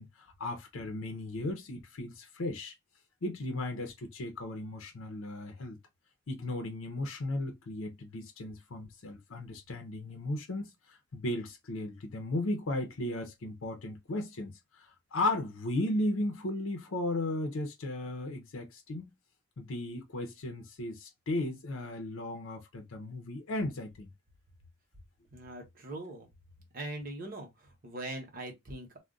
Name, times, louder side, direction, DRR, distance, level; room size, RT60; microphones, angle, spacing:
voice 1, 0.0-2.7 3.2-5.8 6.3-19.1 19.6-24.1, left 1 dB, 80° left, 0.6 m, -36 dB
voice 2, 25.3-26.3 26.7-29.0, right 1 dB, 45° right, 0.9 m, -41 dB
2.3 x 2.1 x 3.7 m
head